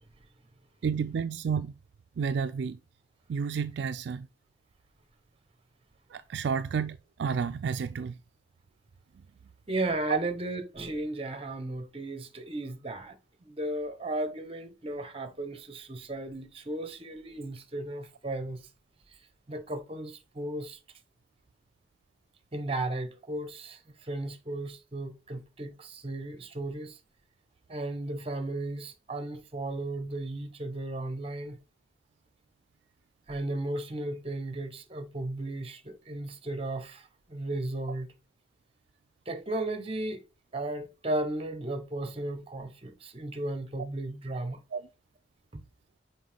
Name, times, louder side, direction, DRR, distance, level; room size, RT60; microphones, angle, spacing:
voice 1, 0.8-1.7 2.2-2.8 3.3-4.3 6.1-8.2 10.1-10.2 44.7-44.8, right 6 dB, 65° right, 0.3 m, -30 dB
voice 2, 9.7-18.6 19.5-20.8 22.5-27.0 27.7-31.6 33.3-38.1 39.3-40.2 40.5-44.6 45.5-45.6, right 2 dB, 30° right, 0.9 m, -35 dB
6.2 x 4.6 x 3.4 m
head